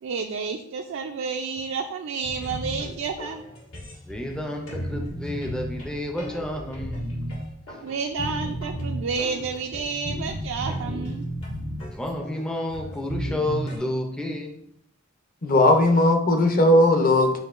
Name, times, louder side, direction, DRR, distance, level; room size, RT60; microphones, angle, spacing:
voice 1, 0.0-3.4 7.8-11.3, right 5 dB, 65° right, 4 dB, 0.3 m, -30 dB
sound 1, 2.2-13.8, equal, 85° left, 1.8 m, -34 dB
voice 2, 4.0-7.2 11.8-14.6, left 1 dB, 5° left, 2 dB, 0.4 m, -31 dB
voice 3, 15.4-17.4, left 1 dB, 45° left, 4 dB, 0.6 m, -18 dB
7.6 x 2.8 x 2.4 m, 0.75 s
head